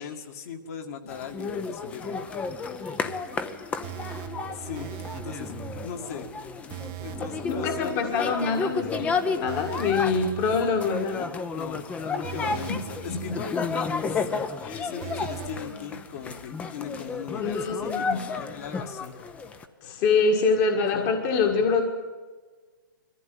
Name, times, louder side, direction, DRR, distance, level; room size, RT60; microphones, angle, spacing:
voice 1, 0.0-2.2 4.5-4.9 5.2-5.5 5.8-6.3 7.0-8.0 11.5-11.8 12.1-13.6 14.1-14.2 14.8-19.1 20.6-20.7 20.9-21.1, left 7 dB, 45° left, 4 dB, 2.1 m, -38 dB
sound 1, 1.1-19.6, left 5 dB, 10° left, 0.8 m, -32 dB
sound 2, 3.1-8.6 8.9-9.0 9.5-11.4 11.7-11.8 12.2-14.2 14.5-14.6 15.0-15.6, right 13 dB, 30° right, 0.9 m, -41 dB
voice 2, 7.5-11.3 12.5-12.8 13.1-13.3 14.1-14.4 14.6-14.9 17.4-18.2 19.8-21.8, left 4 dB, 30° left, 4 dB, 1.7 m, -25 dB
Bark, 10.8-11.4 11.9-12.9 14.2-14.5 15.5-15.7 17.1-17.3 17.5-17.7 18.6-18.7 19.1-20.0, left 6 dB, 75° left, 4.8 m, -46 dB
21.5 x 15.0 x 9.3 m, 1.4 s
hypercardioid pair, 150°, 11 cm